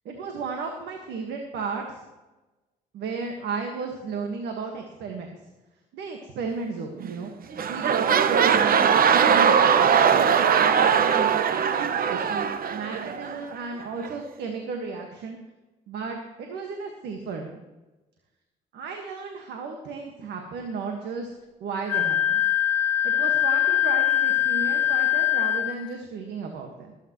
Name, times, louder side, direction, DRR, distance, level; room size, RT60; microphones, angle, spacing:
voice 1, 0.0-2.0 2.9-5.3 5.9-7.3 7.6-15.4 15.9-17.6 18.7-21.3 21.6-22.4 23.0-27.0, right 4 dB, 75° right, 3 dB, 1.7 m, -34 dB
sound 1, 7.0-7.3 7.5-13.4 14.0-14.1, right 7 dB, 55° right, 0.9 m, -20 dB
Wind instrument woodwind instrument, 21.9-25.8, left 11 dB, 10° left, 3.0 m, -22 dB
21.5 x 9.1 x 3.1 m, 1.1 s
supercardioid pair, 65°, 18 cm